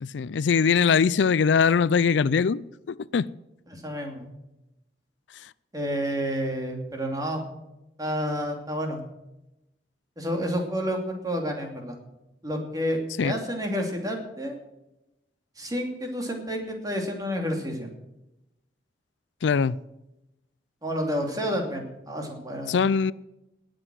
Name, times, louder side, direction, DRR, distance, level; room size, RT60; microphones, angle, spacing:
voice 1, 0.0-3.3 13.2-13.3 19.4-19.8 22.7-23.1, left 6 dB, 90° left, 0.4 m, -22 dB
voice 2, 3.7-4.2 5.7-7.4 8.0-9.0 10.2-12.0 12.4-14.5 15.6-17.9 20.8-22.7, equal, 20° right, 2.7 m, -30 dB
19.0 x 7.8 x 6.3 m
head